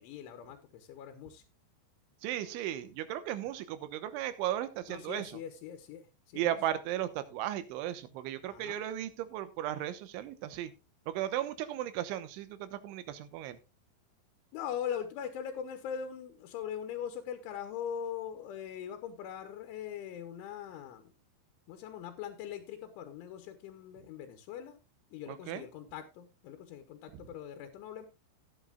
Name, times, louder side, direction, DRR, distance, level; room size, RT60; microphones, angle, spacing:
voice 1, 0.0-1.4 4.9-6.5 8.4-8.8 14.5-21.1 21.7-24.8 25.1-28.1, left 9 dB, 90° left, 7 dB, 3.5 m, -41 dB
voice 2, 2.2-5.3 6.3-10.7 11.1-13.6 25.3-25.7, right 12 dB, 85° right, 12 dB, 3.4 m, -36 dB
17.0 x 9.1 x 2.3 m, 0.26 s
omnidirectional pair, 5.4 m